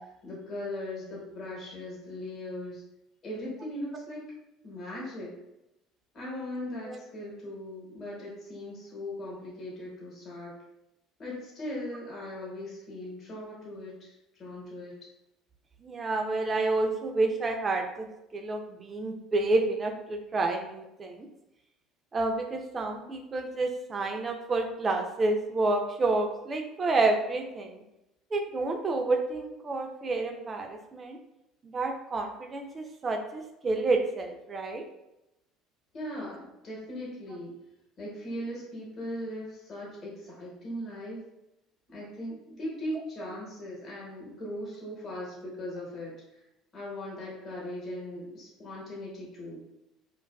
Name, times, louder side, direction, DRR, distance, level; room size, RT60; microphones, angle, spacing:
voice 1, 0.0-2.8 3.2-4.3 4.6-5.4 6.1-10.6 11.2-15.1 35.9-37.6 38.0-41.2 41.9-46.1 46.7-49.6, left 1 dB, 45° left, -5 dB, 1.0 m, -39 dB
voice 2, 15.8-18.1 18.3-21.3 22.1-27.8 28.3-31.2 31.6-34.8, right 3 dB, 30° right, 3 dB, 0.4 m, -29 dB
2.5 x 2.3 x 2.2 m, 0.89 s
hypercardioid pair, 75°, 0 cm